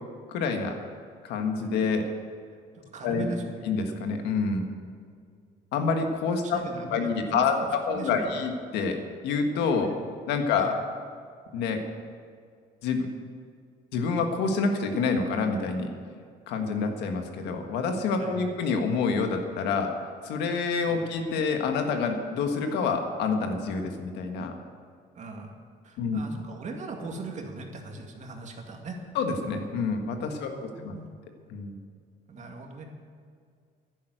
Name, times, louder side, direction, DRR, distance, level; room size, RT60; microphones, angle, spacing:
voice 1, 0.3-0.8 1.2-2.1 3.0-3.3 3.6-4.7 5.7-6.6 6.9-9.0 9.2-9.9 10.3-10.7 11.5-11.8 12.8-13.0 13.9-15.9 16.5-19.9 20.2-24.5 26.0-26.2 29.1-30.9 31.5-31.8, left 4 dB, 85° left, 5 dB, 1.7 m, -27 dB
voice 2, 2.7-3.5 6.4-8.4 9.8-10.0 10.5-10.8 18.2-18.5 20.9-21.0 25.1-25.5 25.8-29.0 30.3-31.1 32.3-32.8, right 3 dB, 45° right, 2 dB, 2.1 m, -39 dB
11.0 x 10.5 x 8.0 m, 2.1 s
cardioid pair, 110°, 17 cm